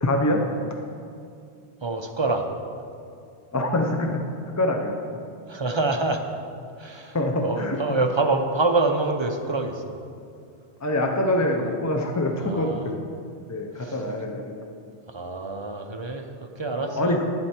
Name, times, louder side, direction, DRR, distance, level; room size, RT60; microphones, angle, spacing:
voice 1, 0.0-0.5 3.5-4.2 4.6-4.9 7.1-7.8 10.8-12.7 13.5-14.7 16.7-17.2, left 1 dB, 20° left, 2 dB, 0.5 m, -24 dB
voice 2, 1.8-2.5 5.5-6.3 6.8-7.2 7.4-10.0 12.4-12.9 13.8-14.0 15.1-17.2, right 3 dB, 35° right, 4 dB, 0.5 m, -26 dB
11.0 x 7.8 x 4.3 m, 2.4 s
omnidirectional pair, 1.2 m